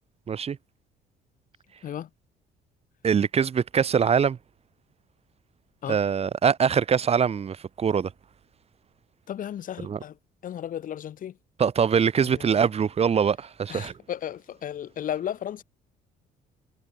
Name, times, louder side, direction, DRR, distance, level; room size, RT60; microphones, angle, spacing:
voice 1, 3.0-4.4 5.9-8.1 9.8-10.0 11.6-13.9, right 7 dB, 35° right, 1.7 m, -23 dB
voice 2, 9.3-10.2 10.4-11.3 12.2-12.7 13.7-15.6, left 10 dB, 55° left, 2.0 m, -34 dB
cardioid pair, 110°, 17 cm